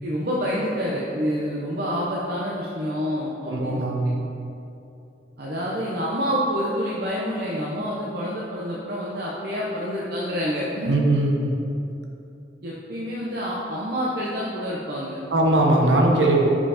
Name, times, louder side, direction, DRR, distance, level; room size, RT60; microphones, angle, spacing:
voice 1, 0.0-3.8 5.4-11.0 12.6-15.2, equal, 60° right, -5 dB, 0.8 m, -27 dB
voice 2, 3.4-4.1 10.9-11.5 15.3-16.5, right 1 dB, 90° right, 0 dB, 1.0 m, -20 dB
5.5 x 5.3 x 4.9 m, 2.7 s
head